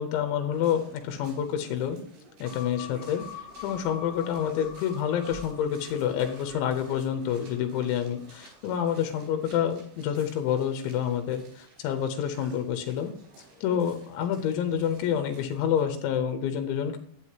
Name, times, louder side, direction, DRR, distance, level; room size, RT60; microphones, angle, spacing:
voice 1, 0.0-2.0 2.4-3.2 3.6-13.1 13.6-17.0, left 9 dB, 80° left, 7 dB, 3.2 m, -28 dB
sound 1, 0.5-15.8, right 3 dB, 75° right, 5.5 m, -54 dB
sound 2, 2.4-8.8, left 7 dB, 50° right, 0.6 m, -45 dB
11.5 x 9.1 x 2.8 m, 0.65 s
omnidirectional pair, 5.3 m